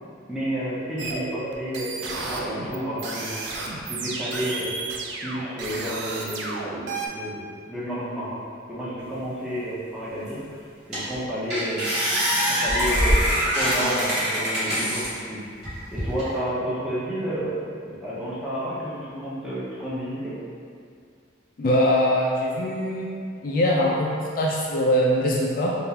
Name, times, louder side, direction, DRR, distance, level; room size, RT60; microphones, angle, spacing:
voice 1, 0.3-3.4 3.8-4.7 5.2-8.4 8.7-10.4 10.9-11.9 12.3-13.2 13.5-15.4 15.9-20.3, equal, 5° right, -10 dB, 0.6 m, -31 dB
sound 1, 1.0-7.1, right 3 dB, 70° right, 0.4 m, -32 dB
sound 2, 10.3-10.4 10.9-11.2 11.5-15.1 15.6-16.3, equal, 40° right, 1.3 m, -23 dB
voice 2, 21.6-23.1 23.4-25.7, equal, 45° left, -3 dB, 0.3 m, -22 dB
3.4 x 2.4 x 2.8 m, 2.3 s
head